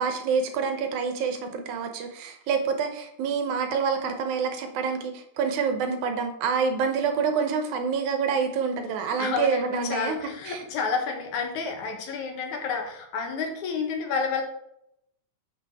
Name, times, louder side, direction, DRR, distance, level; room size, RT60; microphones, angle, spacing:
voice 1, 0.0-10.2 10.5-10.6, right 5 dB, 75° right, 6 dB, 2.2 m, -27 dB
voice 2, 9.2-14.4, left 5 dB, 75° left, 4 dB, 2.5 m, -30 dB
8.9 x 6.0 x 3.5 m, 0.76 s
omnidirectional pair, 3.6 m